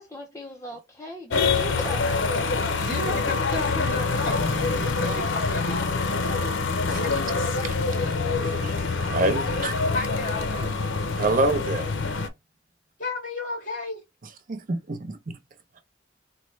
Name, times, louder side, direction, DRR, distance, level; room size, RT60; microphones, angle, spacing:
voice 1, 0.0-2.3, left 1 dB, 15° left, 0.6 m, -38 dB
sound 1, 1.3-12.3, left 4 dB, 85° left, 0.6 m, -25 dB
voice 2, 2.8-6.1 9.9-10.8 13.0-14.0, left 2 dB, 45° left, 2.2 m, -33 dB
voice 3, 9.0-9.7 11.1-11.9 14.5-15.2, right 2 dB, 45° right, 0.6 m, -26 dB
4.1 x 2.2 x 3.1 m
head